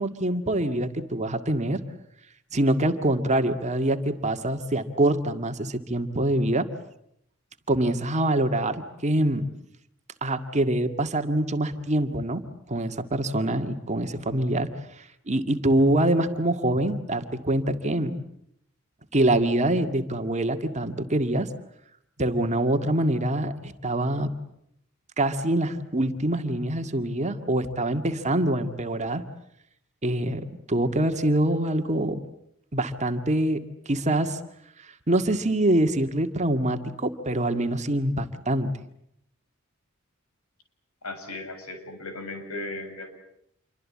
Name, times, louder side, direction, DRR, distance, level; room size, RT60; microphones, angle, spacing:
voice 1, 0.0-1.8 2.5-6.7 7.7-9.4 10.2-12.4 12.7-14.7 15.0-18.2 19.1-21.5 22.2-24.3 25.2-29.2 30.0-32.2 32.7-34.4 35.1-38.7, right 1 dB, 30° right, 7 dB, 2.0 m, -25 dB
voice 2, 41.0-43.1, left 2 dB, 85° left, 7 dB, 7.3 m, -36 dB
28.0 x 24.0 x 8.6 m, 0.76 s
head